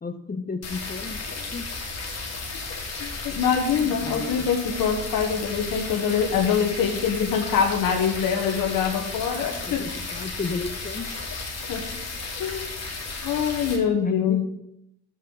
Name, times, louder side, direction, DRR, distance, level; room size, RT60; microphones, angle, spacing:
voice 1, 0.0-1.7 3.8-4.5 9.6-11.1 14.0-14.5, left 4 dB, 25° left, 9 dB, 1.2 m, -33 dB
sound 1, 0.6-13.8, left 3 dB, 50° left, 2.5 m, -34 dB
voice 2, 3.0-9.8 11.7-11.8 12.4-12.6 13.2-14.5, left 7 dB, 70° left, 1 dB, 1.4 m, -24 dB
10.5 x 8.1 x 4.0 m, 0.78 s
supercardioid pair, 70°, 35 cm